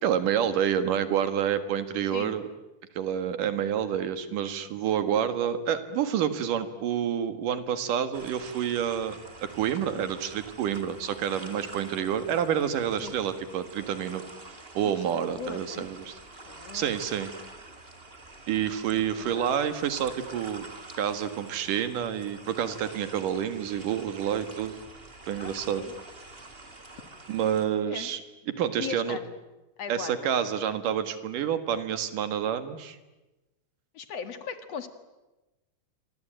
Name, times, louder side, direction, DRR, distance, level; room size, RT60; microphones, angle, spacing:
voice 1, 0.0-2.5 3.0-14.2 14.7-16.2 16.7-17.3 18.5-20.7 21.0-24.8 25.3-25.8 27.3-28.2 28.5-29.2 29.9-33.0, right 9 dB, 85° right, 11 dB, 3.3 m, -28 dB
sound 1, 8.1-27.6, right 2 dB, 20° right, 2.2 m, -47 dB
voice 2, 15.0-15.9 16.5-16.9 18.9-19.5 25.4-25.9 27.8-28.1 28.8-29.3 29.8-30.3 33.9-34.9, left 6 dB, 55° left, 10 dB, 2.7 m, -39 dB
27.5 x 24.0 x 9.1 m, 1.1 s
omnidirectional pair, 3.7 m